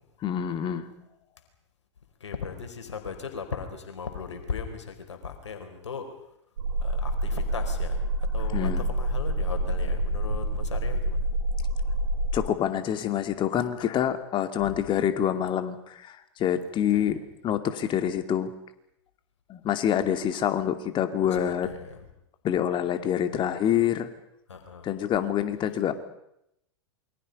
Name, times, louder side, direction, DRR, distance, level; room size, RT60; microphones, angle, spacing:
voice 1, 0.2-0.9 8.5-8.8 12.3-17.2 17.4-18.5 19.5-21.7 22.4-24.1 24.8-25.9, left 10 dB, 35° left, 8 dB, 2.6 m, -26 dB
voice 2, 2.2-6.1 6.8-8.1 8.3-11.3 14.6-14.8 16.9-17.3 21.3-22.0 24.5-24.9, left 6 dB, 85° left, 6 dB, 4.6 m, -37 dB
sound 1, 6.6-12.3, right 1 dB, 75° right, 7.2 m, -27 dB
28.0 x 24.0 x 5.5 m, 0.78 s
hypercardioid pair, 100°, 15 cm